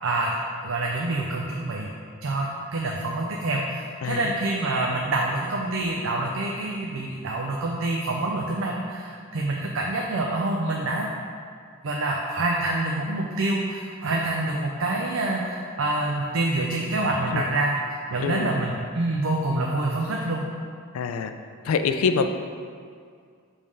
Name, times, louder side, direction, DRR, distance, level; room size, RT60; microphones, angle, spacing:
voice 1, 0.0-1.9 2.2-11.1 11.8-17.8 18.1-20.4, right 2 dB, 70° right, -1 dB, 0.5 m, -26 dB
voice 2, 4.0-4.4 17.3-17.5 18.2-18.6 20.9-21.3 21.6-22.3, left 5 dB, 85° left, 8 dB, 0.4 m, -25 dB
5.3 x 3.4 x 5.3 m, 2.2 s
head